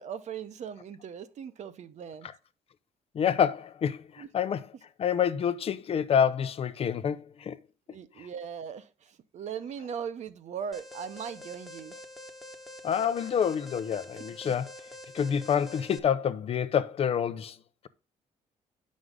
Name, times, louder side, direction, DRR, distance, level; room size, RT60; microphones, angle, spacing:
voice 1, 0.0-2.3 4.2-4.3 7.9-11.9 14.4-14.5, right 7 dB, 55° right, 1.0 m, -39 dB
voice 2, 3.1-4.7 5.0-7.6 8.2-8.3 12.8-14.7 15.1-17.5, left 8 dB, 45° left, 0.7 m, -27 dB
Alarm, 10.7-16.0, left 1 dB, ahead, 1.1 m, -46 dB
9.4 x 6.4 x 3.8 m
cardioid pair, 145°, 14 cm